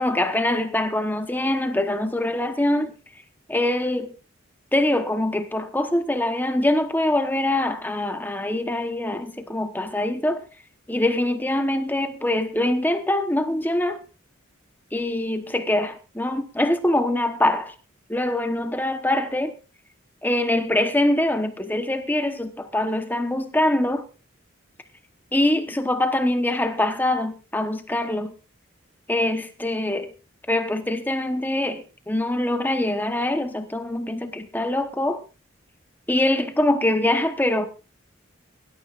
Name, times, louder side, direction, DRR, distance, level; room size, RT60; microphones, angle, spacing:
voice 1, 0.0-2.9 3.5-4.1 4.7-10.4 10.9-14.0 14.9-17.7 18.1-19.5 20.2-24.0 25.3-28.3 29.1-30.1 30.5-35.2 36.1-37.7, left 1 dB, 10° left, 1.0 m, -23 dB
23.5 x 13.0 x 2.5 m
head